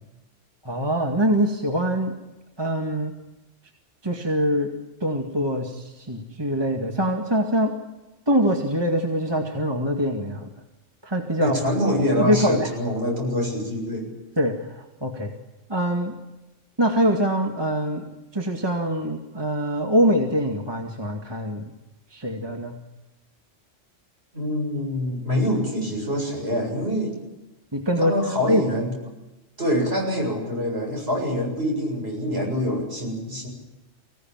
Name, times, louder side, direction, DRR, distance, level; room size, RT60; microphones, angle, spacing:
voice 1, 0.6-2.1 2.6-3.1 4.0-4.7 5.0-7.7 8.3-10.5 11.0-11.6 12.2-12.7 14.4-15.3 15.7-16.1 16.8-18.1 18.3-21.7 22.1-22.7 27.7-28.1 28.5-28.6, equal, 20° right, 2 dB, 2.1 m, -23 dB
voice 2, 11.4-14.1 24.3-27.2 28.0-28.9 29.6-33.5, equal, 55° right, 0 dB, 7.9 m, -25 dB
24.5 x 17.0 x 9.0 m, 1.0 s
omnidirectional pair, 1.3 m